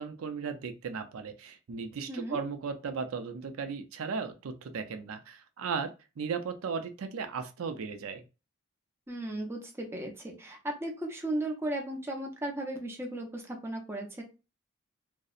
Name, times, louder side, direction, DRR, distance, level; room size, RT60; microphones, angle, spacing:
voice 1, 0.0-8.2, right 5 dB, 90° right, 8 dB, 0.4 m, -36 dB
voice 2, 2.1-2.4 9.1-14.2, right 1 dB, 10° right, 1 dB, 0.5 m, -36 dB
2.6 x 2.0 x 2.4 m, 0.29 s
head